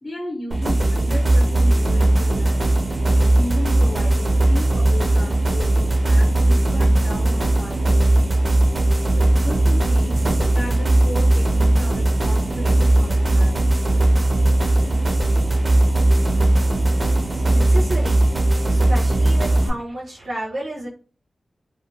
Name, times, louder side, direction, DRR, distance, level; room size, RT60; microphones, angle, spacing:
voice 1, 0.0-2.9 3.1-8.4 9.1-10.2 10.5-13.8, left 1 dB, 40° left, 0 dB, 0.6 m, -34 dB
sound 1, 0.5-19.7, right 1 dB, 35° right, 0.5 m, -18 dB
voice 2, 17.1-18.3 18.7-20.9, right 1 dB, 70° right, -5 dB, 0.7 m, -31 dB
2.4 x 2.1 x 3.0 m, 0.36 s
wide cardioid pair, 125°, 0 cm